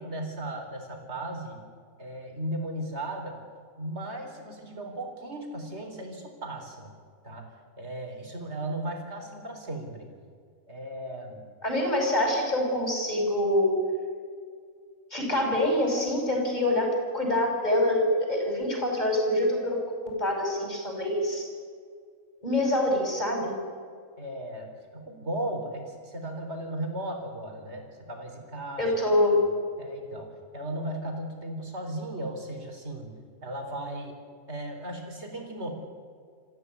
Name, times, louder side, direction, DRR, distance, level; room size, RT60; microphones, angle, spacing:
voice 1, 0.0-1.6 2.0-3.4 3.8-6.9 7.2-7.5 7.8-10.1 10.7-11.4 24.2-28.9 29.8-30.3 30.5-33.1 33.4-34.2 34.5-35.7, right 1 dB, 50° right, 3 dB, 4.4 m, -36 dB
voice 2, 11.6-13.7 15.1-16.9 17.1-21.5 22.4-23.5 28.8-29.4, left 1 dB, 30° left, 1 dB, 6.1 m, -25 dB
26.5 x 15.0 x 9.7 m, 2.1 s
omnidirectional pair, 1.5 m